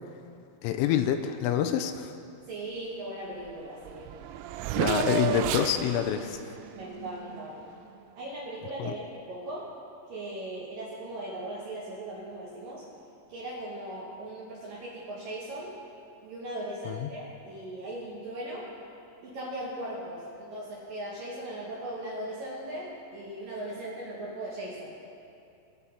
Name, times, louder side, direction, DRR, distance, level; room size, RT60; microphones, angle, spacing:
voice 1, 0.6-2.1 4.8-6.4 8.8-8.9 16.9-17.1, left 10 dB, 85° left, 7 dB, 3.0 m, -27 dB
voice 2, 2.5-4.1 6.7-7.6 8.2-9.7 10.1-12.8 13.3-15.7 16.2-18.7 19.2-25.0, right 1 dB, 65° right, -6 dB, 2.2 m, -38 dB
Race car auto racing / Accelerating revving vroom, 3.5-3.6 3.8-7.8, right 10 dB, 85° right, 2.9 m, -32 dB
21.0 x 7.2 x 4.2 m, 2.6 s
omnidirectional pair, 5.8 m